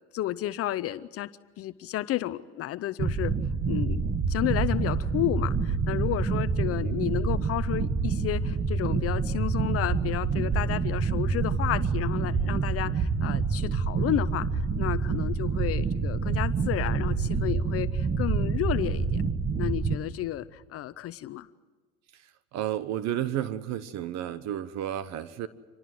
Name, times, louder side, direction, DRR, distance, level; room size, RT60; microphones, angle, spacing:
voice 1, 0.1-1.3 1.6-3.3 3.7-4.0 4.3-19.2 19.6-21.5, left 14 dB, 45° left, 15 dB, 0.7 m, -32 dB
sound 1, 3.0-20.0, right 5 dB, 25° right, 1.7 m, -27 dB
voice 2, 22.1-25.5, right 11 dB, 55° right, 15 dB, 1.1 m, -32 dB
26.0 x 19.5 x 7.8 m, 1.4 s
supercardioid pair, 100°, 33 cm